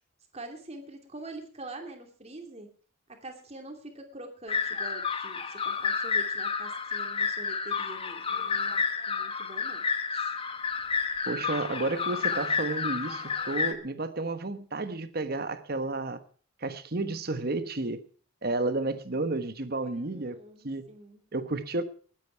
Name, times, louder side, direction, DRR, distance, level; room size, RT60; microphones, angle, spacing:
voice 1, 0.3-2.7 3.2-9.8 10.1-10.3 19.8-21.2, right 2 dB, 30° right, 2.7 m, -45 dB
sound 1, 4.5-13.7, left 5 dB, 25° left, 1.2 m, -30 dB
voice 2, 11.2-16.2 16.6-18.0 18.4-20.4 20.6-20.8 21.3-21.8, right 2 dB, 50° right, 1.2 m, -31 dB
20.0 x 9.2 x 4.6 m
head